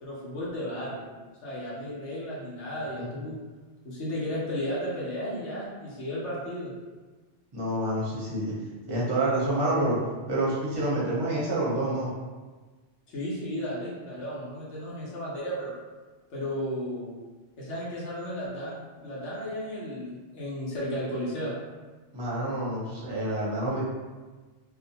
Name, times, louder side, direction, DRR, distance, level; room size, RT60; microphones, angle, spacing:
voice 1, 0.0-1.0 1.4-3.4 3.8-6.7 13.1-15.7 16.3-17.1 17.6-21.5, equal, 80° left, -6 dB, 1.0 m, -34 dB
voice 2, 7.5-8.5 8.9-10.0 10.3-12.1 22.1-23.8, right 1 dB, 30° right, -6 dB, 0.5 m, -28 dB
2.5 x 2.1 x 2.7 m, 1.3 s
omnidirectional pair, 1.2 m